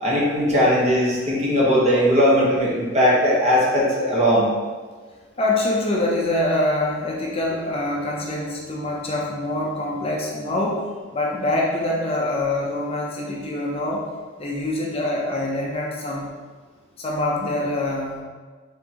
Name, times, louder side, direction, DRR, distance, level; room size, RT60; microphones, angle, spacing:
voice 1, 0.0-4.5, equal, 35° right, -5 dB, 1.0 m, -19 dB
voice 2, 5.4-10.8 11.1-14.0 14.4-16.3 17.0-18.2, left 1 dB, 30° left, -3 dB, 0.5 m, -25 dB
4.4 x 3.6 x 2.8 m, 1.5 s
head